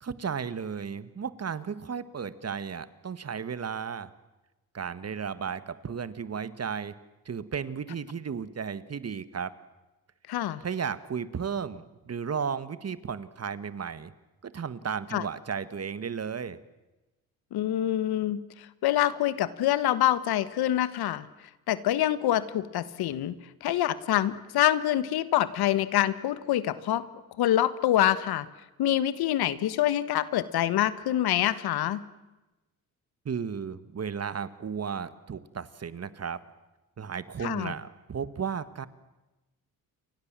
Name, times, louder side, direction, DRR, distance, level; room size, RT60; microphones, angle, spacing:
voice 1, 0.0-4.1 4.7-6.9 7.3-9.5 10.6-14.1 14.4-16.6 33.3-36.4 37.0-38.9, right 6 dB, 40° right, 15 dB, 1.7 m, -34 dB
voice 2, 10.3-10.6 15.1-15.2 17.5-18.4 18.8-21.2 21.7-27.0 27.4-28.5 28.8-32.0 37.4-37.7, left 12 dB, 80° left, 15 dB, 1.5 m, -26 dB
29.5 x 24.5 x 7.6 m, 1.0 s
cardioid pair, 75°, 37 cm